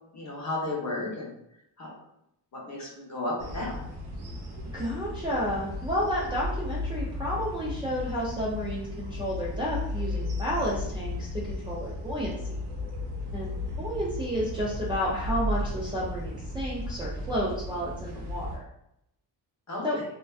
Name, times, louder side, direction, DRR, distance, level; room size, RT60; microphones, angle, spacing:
voice 1, 0.1-1.4 1.8-1.9 2.5-3.8 19.7-20.0, left 2 dB, 40° left, -4 dB, 0.8 m, -33 dB
sound 1, 3.4-18.6, left 2 dB, 65° right, 0.7 m, -35 dB
voice 2, 4.7-12.5 13.3-18.6 19.8-20.0, equal, 15° right, -7 dB, 0.3 m, -31 dB
2.3 x 2.2 x 2.3 m, 0.79 s
cardioid pair, 110°, 42 cm